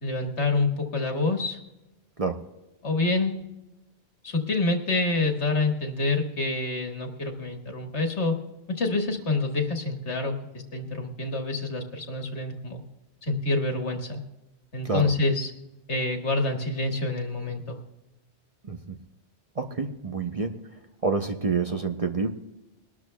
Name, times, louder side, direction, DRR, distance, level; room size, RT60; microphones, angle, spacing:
voice 1, 0.0-1.6 2.8-3.3 4.2-8.4 8.8-12.8 13.2-14.2 14.7-15.5 15.9-17.8, left 2 dB, 75° left, 3 dB, 1.9 m, -27 dB
voice 2, 19.6-20.6 21.0-22.3, right 4 dB, 35° right, 5 dB, 0.7 m, -27 dB
22.0 x 12.5 x 2.3 m, 1.0 s
omnidirectional pair, 1.1 m